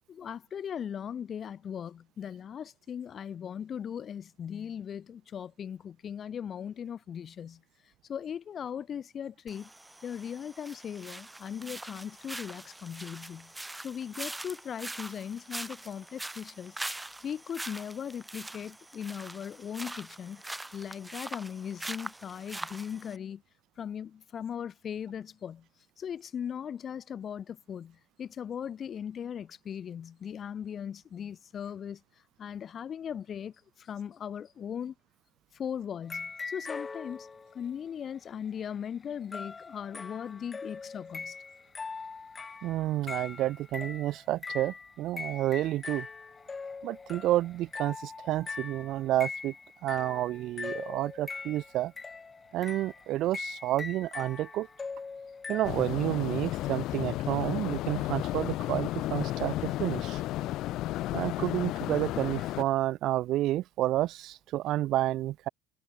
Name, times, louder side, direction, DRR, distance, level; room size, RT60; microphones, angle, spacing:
voice 1, 0.1-7.6 8.1-9.7 10.0-13.5 13.8-16.8 17.2-20.4 20.7-23.4 23.8-25.6 26.0-32.0 32.4-33.5 33.8-34.9 35.5-37.3 37.5-41.4, left 8 dB, 35° left, 1.3 m, -38 dB
sound 1, 9.5-23.2, right 1 dB, 5° right, 4.4 m, -43 dB
sound 2, 36.0-37.6 39.3-55.7, left 4 dB, 20° left, 4.3 m, -41 dB
voice 2, 42.6-46.1 46.8-49.5 49.8-51.9 52.5-54.7 55.5-60.2 61.1-65.5, right 15 dB, 55° right, 0.5 m, -30 dB
sound 3, 55.6-62.6, left 15 dB, 60° left, 0.9 m, -33 dB
cardioid pair, 150°, 0 cm